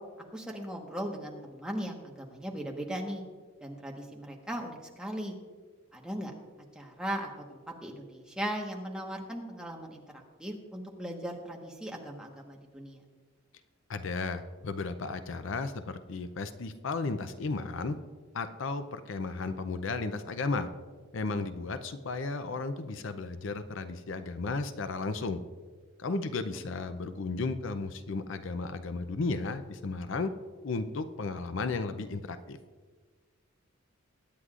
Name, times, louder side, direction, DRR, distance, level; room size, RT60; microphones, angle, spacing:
voice 1, 0.3-3.2 3.6-5.3 5.9-6.3 6.7-10.0 10.4-13.0 26.1-26.2 26.5-26.6, equal, 5° right, 0 dB, 1.2 m, -38 dB
voice 2, 13.9-18.0 18.3-20.7 21.1-25.4 26.0-30.3 30.6-32.6, left 3 dB, 60° left, 10 dB, 0.5 m, -34 dB
22.0 x 9.5 x 2.5 m, 1.5 s
head